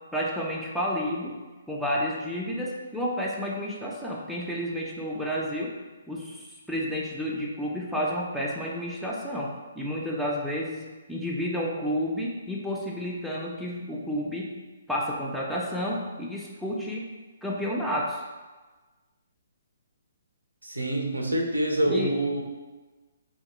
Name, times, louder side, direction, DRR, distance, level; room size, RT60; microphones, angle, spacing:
voice 1, 0.1-1.3 1.7-5.7 6.1-6.4 6.7-14.5 14.9-17.1 17.4-18.2 21.9-22.1, equal, ahead, -4 dB, 0.4 m, -30 dB
voice 2, 20.6-22.4, right 1 dB, 85° right, 1 dB, 0.4 m, -26 dB
2.5 x 2.0 x 2.9 m, 1.3 s
figure-of-eight pair, 135°, 0 cm